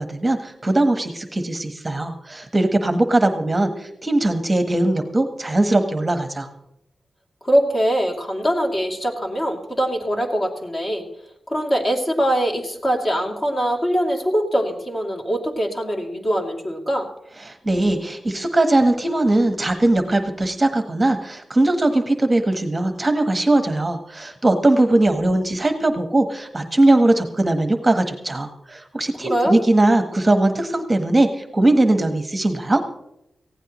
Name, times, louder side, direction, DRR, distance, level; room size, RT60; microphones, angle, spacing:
voice 1, 0.0-6.5 17.4-32.8, right 2 dB, 20° right, 7 dB, 1.1 m, -20 dB
voice 2, 7.4-11.0 11.5-17.1 29.2-29.6, equal, 35° left, 1 dB, 2.7 m, -22 dB
19.0 x 16.0 x 3.0 m, 0.84 s
wide cardioid pair, 105°, 0 cm